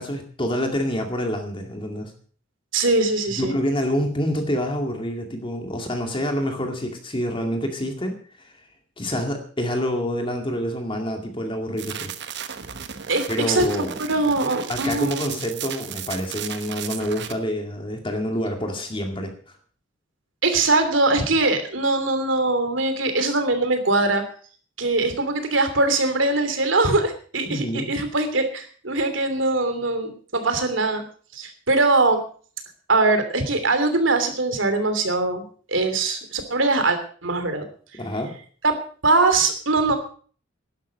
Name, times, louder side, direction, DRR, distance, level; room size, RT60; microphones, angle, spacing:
voice 1, 0.0-2.1 3.4-8.5 9.0-12.1 13.3-13.9 14.7-19.3 27.5-27.9 38.0-38.4, equal, 25° left, 4 dB, 2.2 m, -27 dB
voice 2, 2.7-3.5 13.1-13.8 14.1-15.4 20.4-24.2 24.8-31.0 31.3-32.2 32.9-35.4 35.7-37.6 38.6-38.7 39.0-40.0, right 2 dB, 75° right, 8 dB, 3.0 m, -22 dB
sound 1, 11.8-17.3, right 8 dB, 60° right, 1.3 m, -35 dB
12.0 x 11.5 x 6.5 m, 0.44 s
head